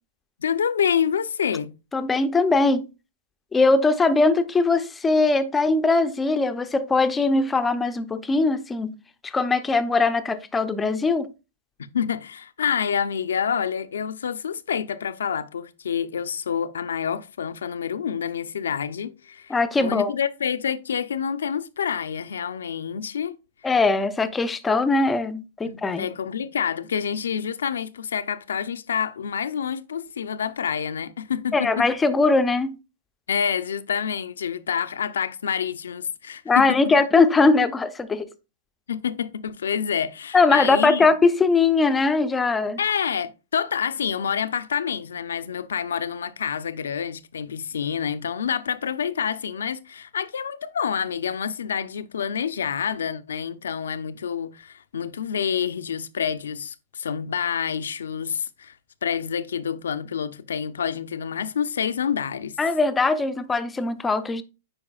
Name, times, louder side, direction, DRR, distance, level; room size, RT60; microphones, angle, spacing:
voice 1, 0.4-1.7 11.9-23.4 25.6-31.9 33.3-36.8 38.9-41.1 42.8-58.8 59.0-62.6, left 7 dB, 90° left, 0.5 m, -27 dB
voice 2, 1.9-2.9 3.5-8.9 9.2-11.3 19.5-20.1 23.6-26.1 31.5-32.7 36.5-38.3 40.3-42.8 62.6-64.4, left 3 dB, 10° left, 0.5 m, -21 dB
8.7 x 4.7 x 2.3 m
hypercardioid pair, 140°, 0 cm